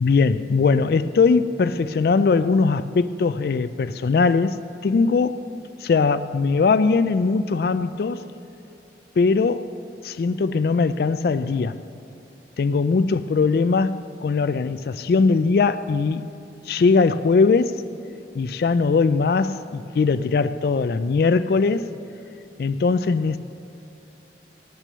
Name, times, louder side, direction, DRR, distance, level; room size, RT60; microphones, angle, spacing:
voice 1, 0.0-5.5 5.8-8.2 9.2-9.7 10.0-11.8 12.6-16.3 16.7-17.8 18.3-21.9 22.6-23.4, left 4 dB, 55° left, 0.3 m, -20 dB
18.0 x 6.0 x 6.7 m
head